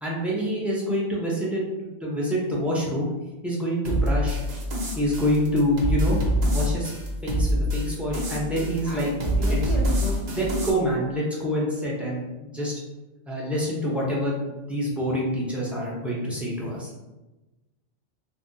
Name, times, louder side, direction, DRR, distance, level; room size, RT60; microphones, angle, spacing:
voice 1, 0.0-3.1 3.4-4.4 5.0-6.2 6.5-6.9 7.2-9.1 9.5-9.7 10.3-12.7 13.3-16.9, equal, ahead, -5 dB, 0.3 m, -26 dB
sound 1, 3.8-10.7, equal, 50° right, 0.5 m, -26 dB
voice 2, 8.4-10.2, equal, 40° left, -4 dB, 0.7 m, -35 dB
2.6 x 2.0 x 3.6 m, 1.1 s
omnidirectional pair, 1.2 m